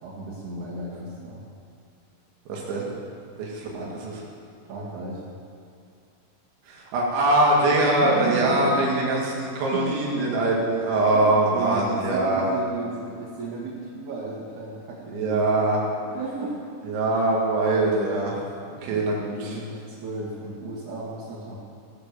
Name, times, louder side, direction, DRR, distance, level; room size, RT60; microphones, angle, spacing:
voice 1, 0.0-1.4 3.7-4.0 4.6-5.2 7.8-8.9 9.7-10.2 11.5-15.5 16.0-16.6 18.8-21.6, right 3 dB, 50° right, -7 dB, 2.7 m, -34 dB
voice 2, 2.5-2.9 3.4-3.7 6.7-12.4 15.1-15.8 16.9-18.4 18.8-19.6, right 2 dB, 80° right, -3 dB, 4.5 m, -22 dB
16.0 x 6.9 x 6.9 m, 2.4 s
omnidirectional pair, 5.2 m